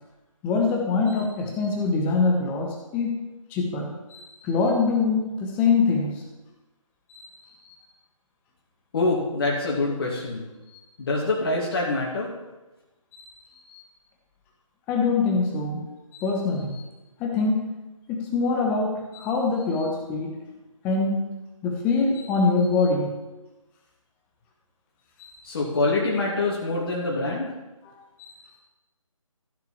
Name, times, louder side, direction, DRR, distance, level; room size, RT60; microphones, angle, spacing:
voice 1, 0.4-6.2 7.1-7.3 13.1-13.2 13.7-13.8 14.9-15.9 16.1-16.8 17.2-17.6 18.1-20.4 20.8-21.2 21.6-23.2 25.2-25.3 27.8-27.9 28.2-28.3, left 4 dB, 10° left, 1 dB, 0.9 m, -24 dB
voice 2, 8.9-10.5 11.0-12.3 25.4-27.5, left 2 dB, 40° left, -4 dB, 2.5 m, -25 dB
14.0 x 6.1 x 4.3 m, 1.1 s
figure-of-eight pair, 155°, 18 cm